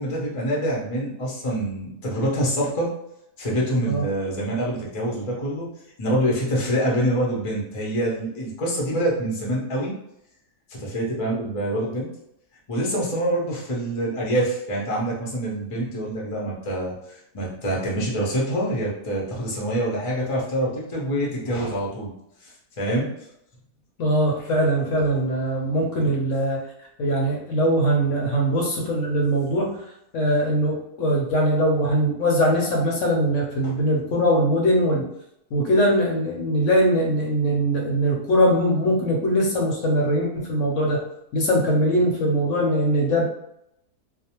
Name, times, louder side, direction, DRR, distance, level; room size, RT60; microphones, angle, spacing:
voice 1, 0.0-2.9 3.4-5.7 6.0-9.9 10.7-12.1 12.7-22.1 22.4-23.1 26.0-26.1 33.6-33.7, right 1 dB, 40° left, -4 dB, 0.4 m, -26 dB
voice 2, 24.0-26.6 27.0-29.7 30.1-35.1 35.5-41.0 41.3-43.2, equal, 65° left, -2 dB, 0.9 m, -21 dB
2.6 x 2.0 x 2.8 m, 0.79 s
omnidirectional pair, 1.6 m